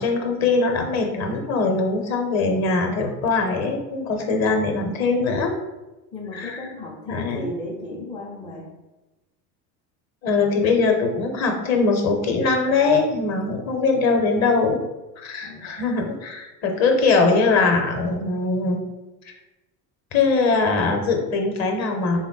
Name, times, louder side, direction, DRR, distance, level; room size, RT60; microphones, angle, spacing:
voice 1, 0.0-5.6 6.3-6.6 7.1-7.5 10.2-14.8 15.2-18.8 20.1-22.2, left 4 dB, 35° left, 3 dB, 0.8 m, -21 dB
voice 2, 6.1-8.7 13.4-13.6 15.4-15.7, left 2 dB, 10° left, -4 dB, 0.4 m, -35 dB
3.4 x 2.2 x 3.7 m, 1.1 s
hypercardioid pair, 75°, 48 cm